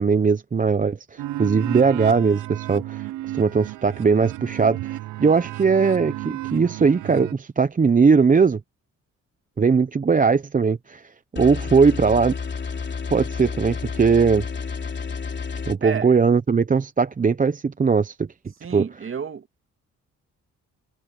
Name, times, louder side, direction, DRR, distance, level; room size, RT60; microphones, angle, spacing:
voice 1, 0.0-3.1 3.3-8.6 9.6-12.3 13.1-14.4 15.7-18.3 18.7-18.8, right 5 dB, 25° right, 0.9 m, -19 dB
sound 1, 1.2-7.3, right 16 dB, 90° right, 0.8 m, -33 dB
sound 2, 11.4-15.7, left 5 dB, 35° left, 3.3 m, -30 dB
voice 2, 18.6-19.7, right 7 dB, 45° right, 2.5 m, -32 dB
cardioid pair, 90°, 30 cm